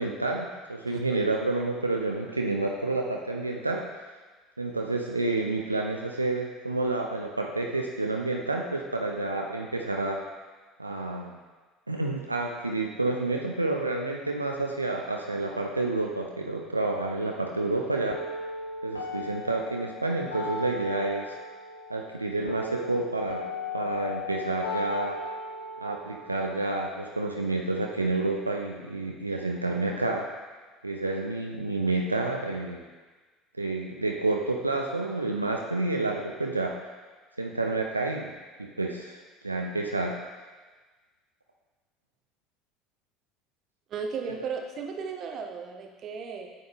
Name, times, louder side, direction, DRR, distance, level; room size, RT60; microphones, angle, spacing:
voice 1, 0.0-3.9 4.6-10.2 10.8-11.4 11.9-18.2 18.8-21.4 21.9-23.5 23.7-25.2 25.8-30.3 30.8-32.8 33.6-36.8 37.4-38.3 38.6-40.2, right 2 dB, 85° right, 0 dB, 0.4 m, -29 dB
voice 2, 0.9-1.2 43.9-46.5, right 5 dB, 45° right, 4 dB, 0.7 m, -35 dB
sound 1, 18.1-28.1, left 3 dB, 85° left, 0.8 m, -37 dB
8.6 x 5.2 x 2.3 m, 1.3 s
figure-of-eight pair, 65°, 0 cm